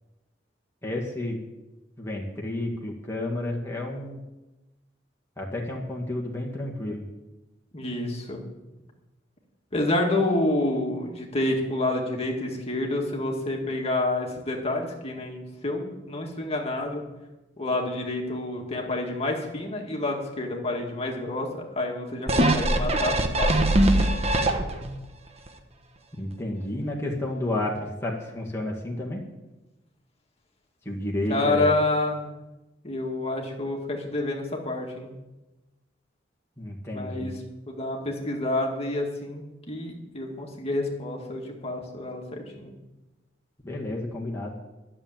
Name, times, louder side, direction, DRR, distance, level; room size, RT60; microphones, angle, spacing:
voice 1, 0.8-1.5 2.0-4.2 5.4-7.0 26.2-29.2 30.9-31.7 36.6-37.3 43.6-44.6, left 1 dB, 15° left, -2 dB, 1.9 m, -31 dB
voice 2, 7.7-8.4 9.7-17.0 17.6-24.1 31.3-32.3 32.8-35.1 36.9-37.3 37.7-42.7, left 2 dB, 35° left, 0 dB, 2.2 m, -28 dB
sound 1, 22.3-25.0 25.5-25.6, right 1 dB, 35° right, 1.2 m, -22 dB
12.5 x 7.4 x 9.1 m, 1.0 s
head